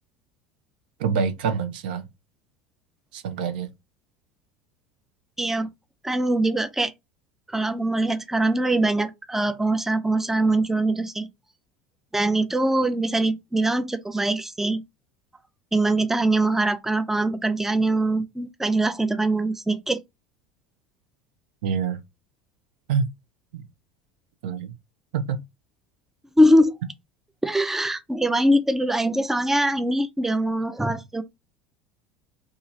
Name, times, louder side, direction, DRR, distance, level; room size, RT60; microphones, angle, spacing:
voice 1, 1.0-2.0 3.1-3.7 21.6-22.0 22.9-23.1 23.5-23.6 24.4-24.7 25.1-25.4, right 6 dB, 75° right, 0.5 m, -26 dB
voice 2, 5.4-5.7 6.0-6.9 7.5-11.3 12.1-14.8 15.7-20.0 26.4-26.8 27.4-31.2, right 1 dB, 5° right, 0.4 m, -22 dB
2.7 x 2.4 x 2.6 m
hypercardioid pair, 80°, 5 cm